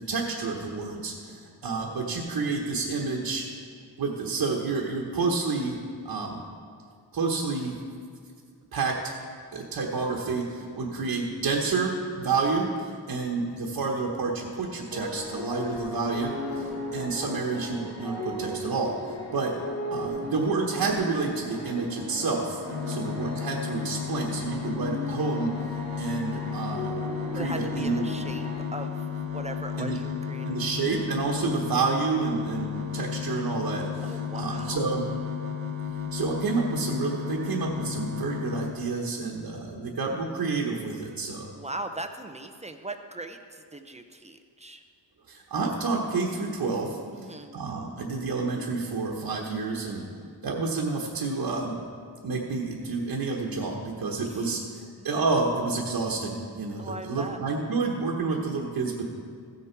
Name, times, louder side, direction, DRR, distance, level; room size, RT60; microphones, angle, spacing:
voice 1, 0.1-3.4 4.0-5.8 6.0-6.4 7.1-7.8 8.7-9.0 9.5-18.9 19.3-19.5 19.9-25.5 26.0-27.0 27.3-28.1 29.8-30.0 30.4-34.0 34.4-35.1 36.1-41.5 45.3-47.0 47.5-50.0 50.4-51.8 52.2-54.6 55.0-59.1, right 4 dB, 55° right, -2 dB, 1.2 m, -29 dB
voice 2, 1.3-1.6 10.6-10.9 16.5-16.9 22.9-23.2 27.3-29.0 29.3-30.6 34.0-35.2 41.5-44.8 47.1-47.6 50.0-50.4 54.2-54.8 56.8-57.4, right 2 dB, 15° right, 6 dB, 0.5 m, -40 dB
sound 1, 14.9-28.6, left 1 dB, 80° left, 1.7 m, -37 dB
sound 2, 22.7-38.7, left 7 dB, 30° right, 1.2 m, -33 dB
15.5 x 6.7 x 4.5 m, 2.1 s
wide cardioid pair, 125°, 43 cm